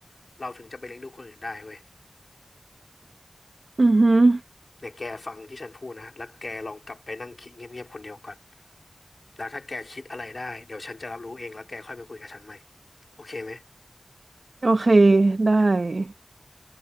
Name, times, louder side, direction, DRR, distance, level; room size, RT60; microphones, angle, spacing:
voice 1, 0.4-1.8 4.8-8.4 9.4-12.6 13.2-13.6 15.6-15.7, left 2 dB, 70° left, 3.7 m, -38 dB
voice 2, 3.8-4.4 14.6-16.1, right 2 dB, 75° right, 0.8 m, -18 dB
wide cardioid pair, 55°, 0 cm